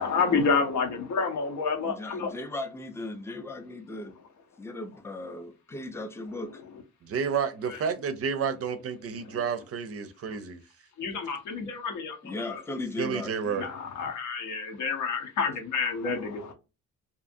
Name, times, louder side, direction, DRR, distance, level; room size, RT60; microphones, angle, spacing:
voice 1, 0.0-2.3 7.7-7.8 9.3-9.4 11.0-12.6 13.4-16.5, left 5 dB, 75° left, 0.8 m, -29 dB
voice 2, 1.8-4.1 4.6-6.6 12.2-13.3, left 2 dB, 10° left, 0.4 m, -37 dB
voice 3, 7.0-10.6 13.0-13.7, right 6 dB, 50° right, 0.5 m, -30 dB
2.6 x 2.4 x 2.5 m
cardioid pair, 90°, 30 cm